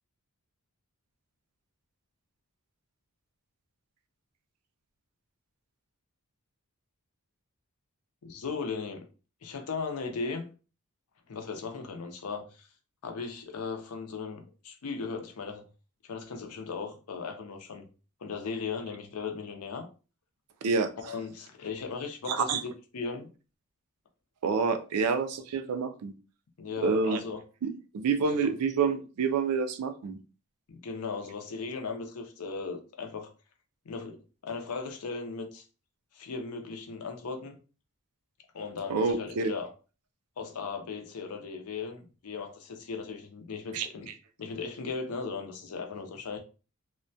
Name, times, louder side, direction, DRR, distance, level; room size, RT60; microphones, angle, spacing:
voice 1, 8.2-9.0 9.4-10.5 11.3-12.7 13.0-15.7 16.0-17.9 18.2-19.9 21.0-23.3 26.6-27.4 28.4-28.5 30.7-33.3 33.9-35.6 36.1-37.6 38.5-39.7 40.4-44.1 44.4-46.4, left 4 dB, 75° left, 0.5 m, -37 dB
voice 2, 22.3-22.6 24.4-26.1 26.8-27.2 27.6-27.7 27.9-30.2 38.9-39.5 43.7-43.9, right 5 dB, 85° right, 0.4 m, -27 dB
2.2 x 2.1 x 2.6 m
head